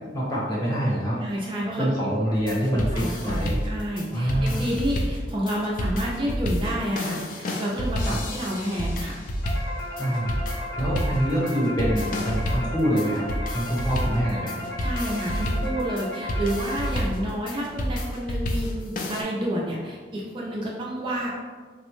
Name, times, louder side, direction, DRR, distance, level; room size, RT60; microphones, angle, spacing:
voice 1, 0.1-1.2 1.8-3.6 4.1-4.7 8.0-8.3 10.0-10.3 10.8-13.3 13.5-14.5, equal, 20° left, -5 dB, 0.8 m, -25 dB
voice 2, 1.2-2.2 2.6-9.2 14.8-21.3, equal, 25° right, -3 dB, 0.3 m, -29 dB
sound 1, 2.4-19.2, equal, 45° left, 0.4 m, -30 dB
sound 2, 9.4-17.3, left 1 dB, 80° left, 1.1 m, -35 dB
3.7 x 2.1 x 3.0 m, 1.5 s
head